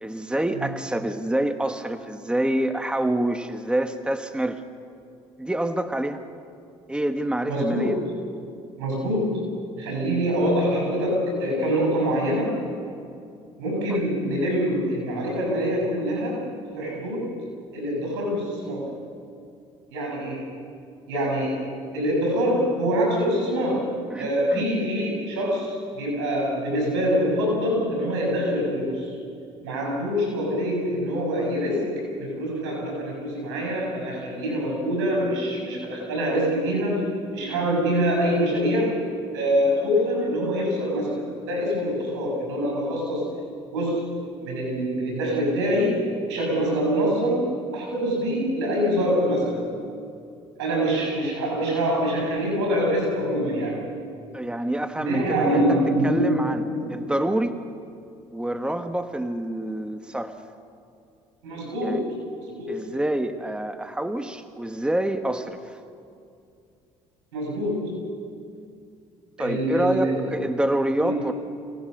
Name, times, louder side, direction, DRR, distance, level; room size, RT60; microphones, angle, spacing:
voice 1, 0.0-4.6 5.4-6.2 6.9-8.0 13.9-14.0 24.1-24.7 54.3-56.6 56.9-57.6 58.3-60.3 61.8-62.0 62.7-65.8 69.4-71.3, right 1 dB, 5° right, 8 dB, 1.3 m, -27 dB
voice 2, 7.5-8.0 8.8-12.5 13.6-16.4 16.8-17.3 17.7-18.9 19.9-20.4 21.1-21.7 21.9-23.9 24.2-29.1 29.6-37.0 37.3-39.0 39.3-43.4 43.7-44.1 44.4-49.6 50.6-53.8 55.0-57.1 61.4-62.1 62.6-62.8 67.3-68.1 69.4-70.4 71.0-71.1, equal, 90° right, 0 dB, 7.1 m, -25 dB
25.5 x 17.5 x 6.6 m, 2.5 s
hypercardioid pair, 65°, 14 cm